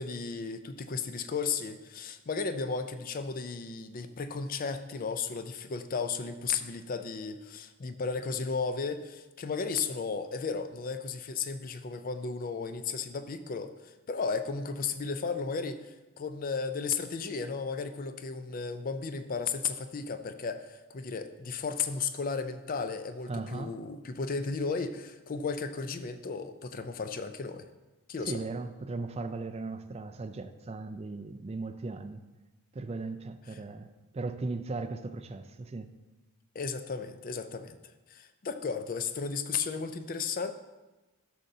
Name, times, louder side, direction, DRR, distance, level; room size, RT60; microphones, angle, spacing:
voice 1, 0.0-27.7 28.1-28.4 33.5-33.6 36.5-37.8 38.1-40.5, left 5 dB, 40° left, 0.4 m, -34 dB
voice 2, 23.3-23.8 28.3-32.2 32.7-33.9 34.1-35.9, right 3 dB, 30° right, 0.3 m, -37 dB
12.0 x 6.6 x 2.7 m
head